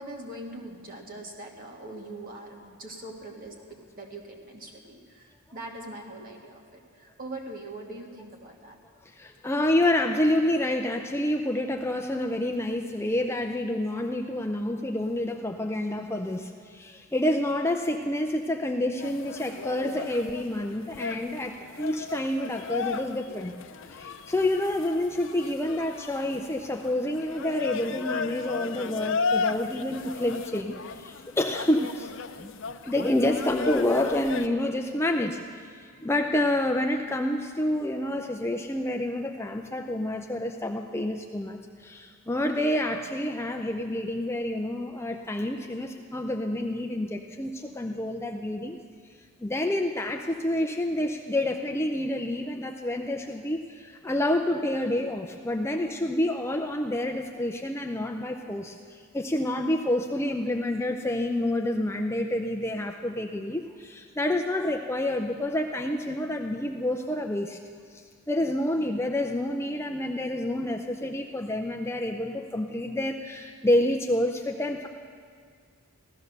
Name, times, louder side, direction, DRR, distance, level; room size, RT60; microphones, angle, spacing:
voice 1, 0.0-8.8, right 2 dB, 40° right, 0 dB, 2.0 m, -42 dB
voice 2, 9.2-23.5 23.9-32.1 32.4-32.5 32.8-35.4 36.0-48.8 49.4-67.6 67.9-68.0 68.3-74.9, left 1 dB, 10° left, 3 dB, 0.5 m, -28 dB
sound 1, 19.0-34.5, left 5 dB, 60° left, 0.6 m, -35 dB
16.0 x 13.0 x 6.7 m, 2.1 s
head